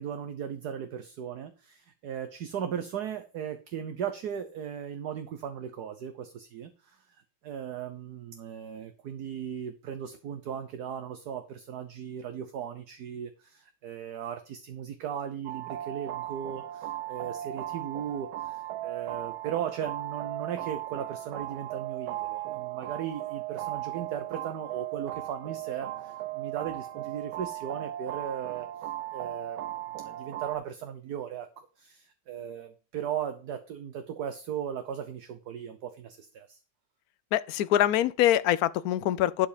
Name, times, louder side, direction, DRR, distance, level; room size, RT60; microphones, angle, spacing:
voice 1, 0.0-7.0 7.4-28.7 29.1-36.6, right 8 dB, 60° right, 1.3 m, -37 dB
sound 1, 15.5-30.6, right 14 dB, 85° right, 1.5 m, -37 dB
voice 2, 37.3-39.5, left 12 dB, 70° left, 0.9 m, -24 dB
12.0 x 4.9 x 5.1 m
omnidirectional pair, 2.2 m